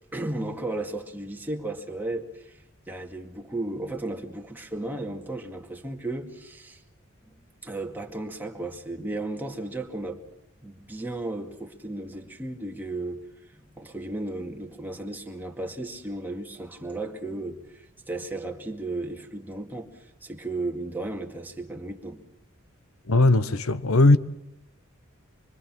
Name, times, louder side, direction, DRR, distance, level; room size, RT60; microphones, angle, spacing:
voice 1, 0.1-6.8 7.2-7.3 7.6-10.2 10.6-13.2 13.5-22.3, right 2 dB, 10° right, 2.2 m, -34 dB
voice 2, 23.0-24.2, left 2 dB, 80° left, 1.1 m, -18 dB
25.5 x 24.0 x 6.1 m
head